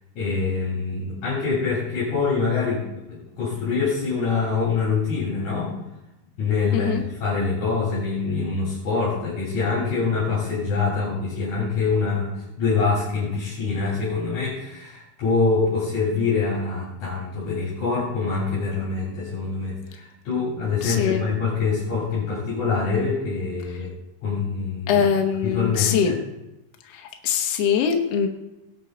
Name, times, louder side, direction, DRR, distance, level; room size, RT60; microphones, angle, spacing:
voice 1, 0.2-5.8 6.4-23.9 24.2-25.1 25.4-26.2, left 4 dB, 50° left, -7 dB, 4.3 m, -25 dB
voice 2, 20.8-21.3 24.9-26.1 27.2-28.3, left 7 dB, 80° left, 4 dB, 1.4 m, -22 dB
18.0 x 8.1 x 4.0 m, 0.93 s
omnidirectional pair, 4.4 m